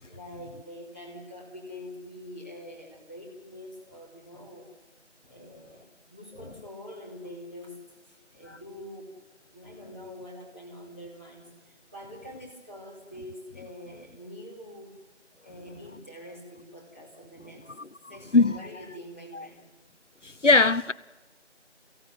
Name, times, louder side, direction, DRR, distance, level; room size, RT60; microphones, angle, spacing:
voice 1, 0.0-4.7 5.3-7.8 8.0-9.1 9.5-14.9 15.4-17.7 18.1-19.6, left 1 dB, 10° right, 2.8 m, -45 dB
voice 2, 20.2-20.9, left 3 dB, 90° left, 1.1 m, -20 dB
23.0 x 16.5 x 9.4 m
figure-of-eight pair, 175°, 36 cm